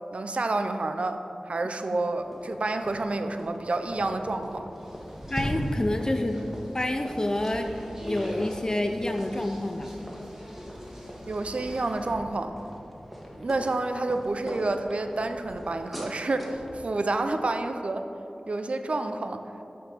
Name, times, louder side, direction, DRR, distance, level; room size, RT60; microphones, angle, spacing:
voice 1, 0.1-4.7 11.3-12.5 13.3-18.1 18.5-19.4, right 2 dB, 65° right, 7 dB, 0.4 m, -29 dB
sound 1, 1.9-16.8, equal, 5° right, 1.3 m, -40 dB
sound 2, 4.7-12.1, equal, 20° right, 1.6 m, -42 dB
voice 2, 5.3-7.7 8.0-9.9, left 1 dB, 30° left, 5 dB, 0.4 m, -28 dB
6.4 x 4.4 x 5.2 m, 2.8 s
cardioid pair, 40°, 2 cm